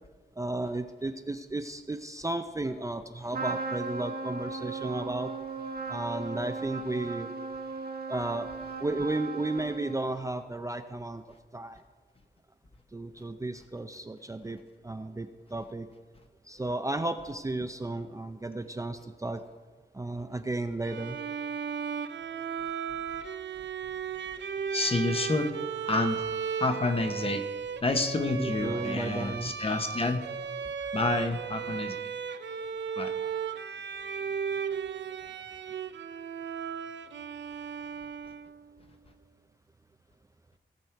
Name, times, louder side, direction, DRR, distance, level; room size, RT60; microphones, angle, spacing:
voice 1, 0.4-5.3 5.9-7.3 8.1-8.5 8.8-11.2 11.5-11.8 12.9-14.6 14.8-15.9 16.4-19.4 19.9-21.2 28.4-29.6, right 2 dB, 15° right, 7 dB, 0.5 m, -33 dB
Trumpet, 3.3-10.2, right 4 dB, 60° right, 1.2 m, -37 dB
Bowed string instrument, 20.8-38.7, right 6 dB, 85° right, 0.6 m, -35 dB
voice 2, 24.7-25.5 25.9-26.2 26.6-27.4 27.8-30.2 30.9-32.0 33.0-33.1, left 2 dB, 30° left, 7 dB, 1.0 m, -29 dB
17.5 x 6.2 x 4.6 m, 1.4 s
wide cardioid pair, 105°, 18 cm